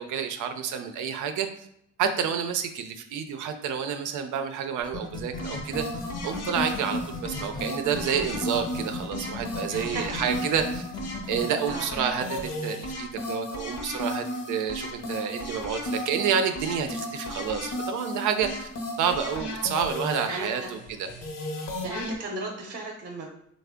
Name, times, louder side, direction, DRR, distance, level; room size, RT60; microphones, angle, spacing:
voice 1, 0.0-1.5 2.0-5.8 6.2-10.8 11.3-18.7 19.0-21.1, right 7 dB, 80° right, 7 dB, 0.5 m, -29 dB
sound 1, 4.8-11.4, left 4 dB, 15° left, 0.6 m, -37 dB
sound 2, 5.4-22.1, left 1 dB, 55° left, 0.8 m, -34 dB
voice 2, 9.7-10.2 11.7-11.9 20.3-20.7 21.8-23.3, right 2 dB, 35° right, 0 dB, 0.7 m, -35 dB
3.4 x 2.0 x 3.6 m, 0.74 s
cardioid pair, 90°, 30 cm